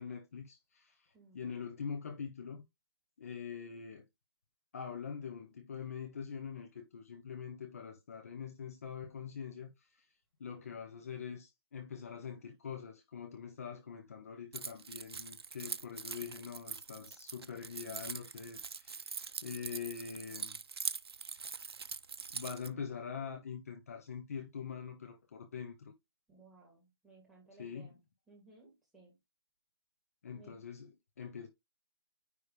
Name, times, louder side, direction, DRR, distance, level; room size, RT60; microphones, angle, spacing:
voice 1, 0.0-2.6 3.2-4.1 4.7-10.1 10.4-20.6 21.5-21.7 22.3-25.9 27.6-28.0 30.2-31.5, left 6 dB, 35° left, 1.0 m, -44 dB
voice 2, 1.1-1.5 26.3-28.0 28.3-29.1 30.3-30.6, right 3 dB, ahead, 2.2 m, -60 dB
Keys jangling, 14.5-22.7, right 5 dB, 70° right, 0.8 m, -43 dB
9.7 x 3.3 x 5.0 m
hypercardioid pair, 175°, 14 cm